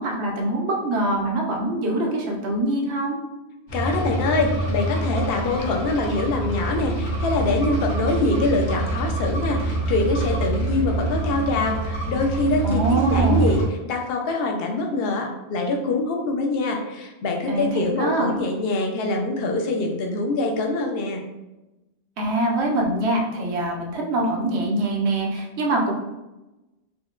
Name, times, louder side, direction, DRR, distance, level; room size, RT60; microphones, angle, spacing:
voice 1, 0.0-3.2 12.6-13.5 17.5-18.5 22.2-25.9, right 1 dB, 80° right, 0 dB, 1.0 m, -24 dB
sound 1, 3.7-13.6, right 2 dB, 80° left, 1.3 m, -26 dB
voice 2, 3.7-21.2, left 2 dB, 65° left, 2 dB, 0.8 m, -24 dB
4.3 x 2.1 x 2.3 m, 1.0 s
omnidirectional pair, 1.1 m